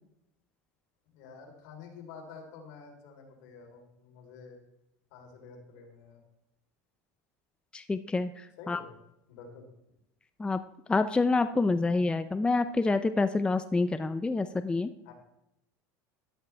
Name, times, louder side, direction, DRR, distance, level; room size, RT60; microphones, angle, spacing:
voice 1, 1.1-4.6 5.1-6.2 8.6-8.9 9.3-9.6 15.0-15.1, left 5 dB, 70° left, 1 dB, 4.0 m, -49 dB
voice 2, 7.7-8.8 10.4-10.6 10.9-14.9, left 3 dB, 10° left, 11 dB, 0.5 m, -27 dB
14.0 x 12.0 x 3.5 m, 0.85 s
supercardioid pair, 115°, 9 cm